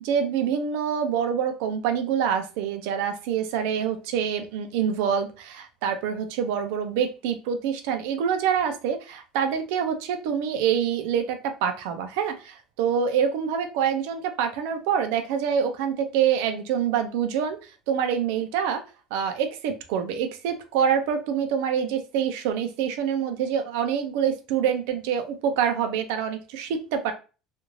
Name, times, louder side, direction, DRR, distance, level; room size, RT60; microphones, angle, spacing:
voice 1, 0.0-18.8 19.1-27.1, right 8 dB, 90° right, 7 dB, 0.5 m, -26 dB
2.6 x 2.4 x 3.0 m, 0.33 s
cardioid pair, 150°, 0 cm